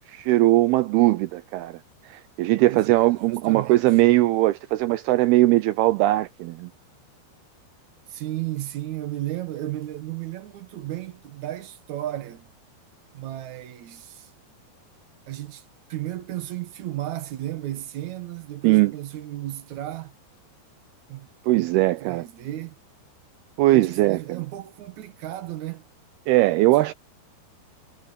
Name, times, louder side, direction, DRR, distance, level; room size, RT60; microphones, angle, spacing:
voice 1, 0.1-1.8 2.1-6.7 18.6-18.9 21.5-22.3 23.6-24.4 26.3-26.9, right 17 dB, 90° right, 2.3 m, -20 dB
voice 2, 2.6-4.0 8.1-12.5 13.1-14.3 15.3-15.6 15.9-20.1 21.1-21.3 21.5-22.8 23.7-25.8, right 14 dB, 70° right, 1.7 m, -34 dB
omnidirectional pair, 5.1 m